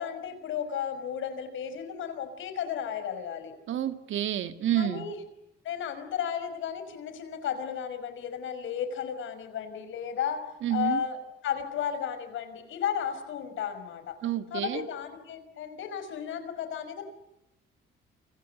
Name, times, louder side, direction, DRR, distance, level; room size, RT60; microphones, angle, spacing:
voice 1, 0.0-3.5 4.7-5.2 5.6-10.4 10.7-11.2 11.4-14.2 14.5-17.1, left 8 dB, 80° left, 10 dB, 5.5 m, -34 dB
voice 2, 3.7-5.1 10.6-11.0 14.2-14.9, right 11 dB, 75° right, 9 dB, 2.1 m, -29 dB
29.5 x 25.0 x 8.1 m, 0.85 s
cardioid pair, 90°, 20 cm